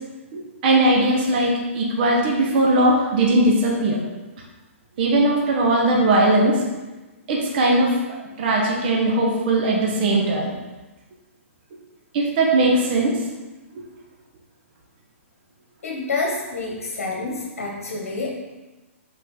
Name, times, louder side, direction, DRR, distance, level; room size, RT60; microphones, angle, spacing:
voice 1, 0.3-4.0 5.0-6.6 7.3-7.9 8.4-10.5 12.1-13.1, right 2 dB, 45° right, -2 dB, 1.3 m, -19 dB
voice 2, 15.8-18.3, left 3 dB, 75° left, -1 dB, 1.3 m, -28 dB
5.6 x 4.7 x 3.8 m, 1.2 s
hypercardioid pair, 150°, 8 cm